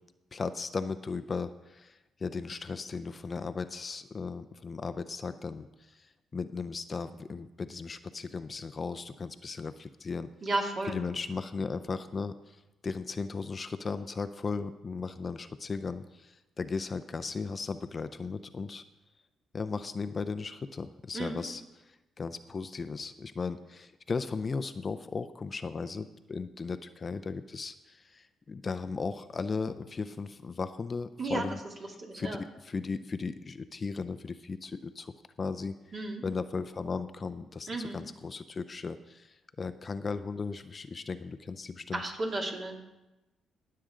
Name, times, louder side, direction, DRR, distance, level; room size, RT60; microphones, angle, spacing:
voice 1, 0.3-10.3 10.9-18.8 19.5-21.6 21.9-31.6 32.2-35.1 35.4-35.7 36.2-37.7 37.9-42.0, left 4 dB, 35° left, 11 dB, 0.5 m, -36 dB
voice 2, 10.4-11.0 21.1-21.4 31.2-31.4 32.0-32.4 35.9-36.2 37.7-38.0 41.9-42.9, right 2 dB, 45° right, 0 dB, 2.5 m, -33 dB
19.0 x 7.6 x 3.8 m, 1.0 s
cardioid pair, 90°, 0 cm